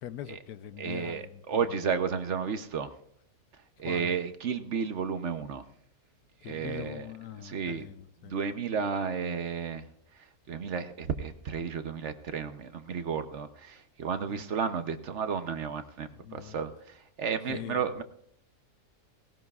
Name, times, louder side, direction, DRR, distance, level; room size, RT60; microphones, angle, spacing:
voice 1, 0.0-1.9 3.8-4.2 6.4-8.4 14.3-14.5 16.1-16.6 17.5-18.0, left 10 dB, 80° left, 13 dB, 1.2 m, -43 dB
voice 2, 0.8-2.9 3.8-5.6 6.4-7.1 7.4-7.9 8.2-9.8 10.5-18.0, right 6 dB, 60° right, 9 dB, 0.9 m, -32 dB
18.0 x 17.5 x 2.4 m, 0.69 s
omnidirectional pair, 1.6 m